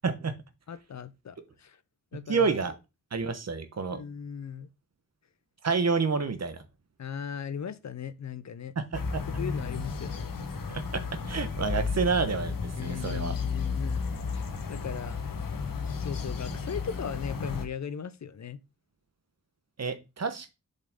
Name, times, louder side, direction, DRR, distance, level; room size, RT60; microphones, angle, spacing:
voice 1, 0.0-0.3 2.1-2.7 3.1-4.0 5.6-6.6 8.8-9.2 10.7-13.4 19.8-20.5, right 5 dB, 50° right, 1.0 m, -29 dB
voice 2, 0.7-1.8 2.1-2.6 3.9-4.7 7.0-8.7 9.4-10.4 12.8-14.1 14.3-14.4 14.7-15.2 16.0-18.6, left 8 dB, 55° left, 0.6 m, -38 dB
sound 1, 8.9-17.7, left 4 dB, 75° left, 1.2 m, -33 dB
7.2 x 5.5 x 3.6 m
wide cardioid pair, 150°, 34 cm